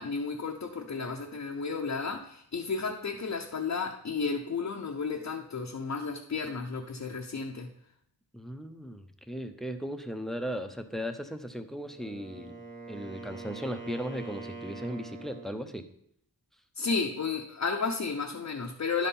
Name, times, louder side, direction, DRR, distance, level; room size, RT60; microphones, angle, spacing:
voice 1, 0.0-7.7 16.8-19.1, left 4 dB, 45° left, 1 dB, 0.7 m, -33 dB
voice 2, 8.3-12.6 12.9-15.8, equal, ahead, 8 dB, 0.6 m, -37 dB
Wind instrument woodwind instrument, 11.8-15.7, right 3 dB, 20° right, 1.4 m, -44 dB
10.5 x 4.2 x 5.4 m, 0.71 s
wide cardioid pair, 105°, 40 cm